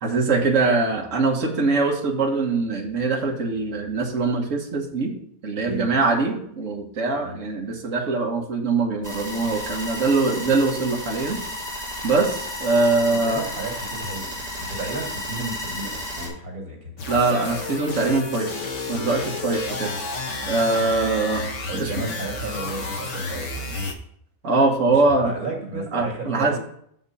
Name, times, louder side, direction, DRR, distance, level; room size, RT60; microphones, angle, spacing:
voice 1, 0.0-5.1 5.4-11.4 11.7-13.4 17.1-18.6 18.9-19.9 20.5-21.4 21.7-21.9 24.4-25.3 25.7-26.5, right 3 dB, 60° right, 1 dB, 1.7 m, -22 dB
voice 2, 5.6-6.0 7.2-7.4 13.1-16.9 21.7-23.9 24.9-26.6, right 3 dB, 80° right, 1 dB, 2.8 m, -33 dB
sound 1, 9.0-16.3, left 1 dB, 25° right, 3.0 m, -33 dB
sound 2, 17.0-23.9, left 3 dB, 60° left, 1.4 m, -31 dB
7.1 x 5.9 x 5.4 m, 0.68 s
omnidirectional pair, 1.5 m